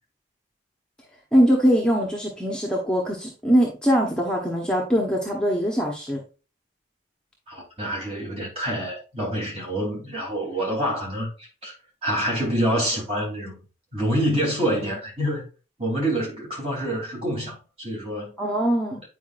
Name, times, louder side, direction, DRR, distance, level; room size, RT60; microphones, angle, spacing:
voice 1, 1.3-6.2 18.4-19.0, equal, 5° left, 1.0 m, -22 dB
voice 2, 7.5-11.3 11.6-11.7 12.0-13.6 13.9-15.5 15.8-18.3, equal, 35° right, 3.1 m, -26 dB
9.2 x 4.9 x 2.5 m
head